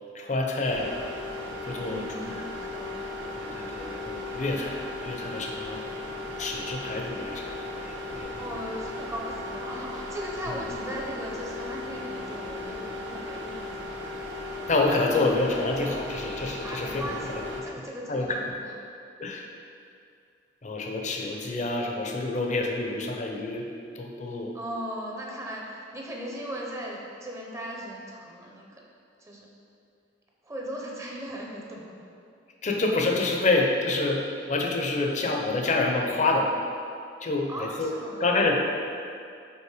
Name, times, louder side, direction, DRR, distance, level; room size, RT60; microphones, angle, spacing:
voice 1, 0.1-0.9 1.5-2.2 3.4-5.9 6.4-8.4 10.5-10.6 14.7-17.1 18.1-18.4 19.2-19.5 20.6-23.6 23.9-24.5 32.6-34.2 34.5-36.5 37.2-37.9 38.2-38.6, left 2 dB, 40° left, 1 dB, 0.7 m, -27 dB
sound 1, 0.7-17.6, left 2 dB, 75° right, 1.0 m, -36 dB
voice 2, 1.8-3.1 8.4-13.9 16.6-18.7 24.5-28.8 29.2-29.5 30.4-32.1 37.5-38.4, equal, 15° right, -2 dB, 0.8 m, -38 dB
5.6 x 4.2 x 4.9 m, 2.4 s
head